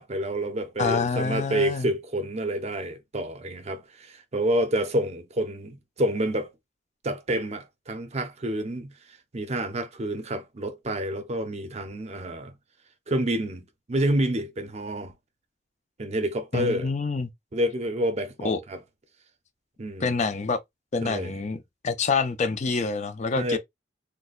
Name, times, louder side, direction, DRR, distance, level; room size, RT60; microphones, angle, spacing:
voice 1, 0.0-6.5 7.0-8.9 9.3-12.5 13.1-13.6 13.9-15.1 16.0-16.9 17.5-18.8 19.8-20.1 21.0-21.3 23.4-23.6, right 1 dB, 35° right, 0.6 m, -28 dB
voice 2, 0.8-1.9 16.5-17.3 18.4-18.6 20.0-20.6 20.9-23.6, left 4 dB, 40° left, 0.5 m, -27 dB
3.9 x 2.1 x 2.4 m
head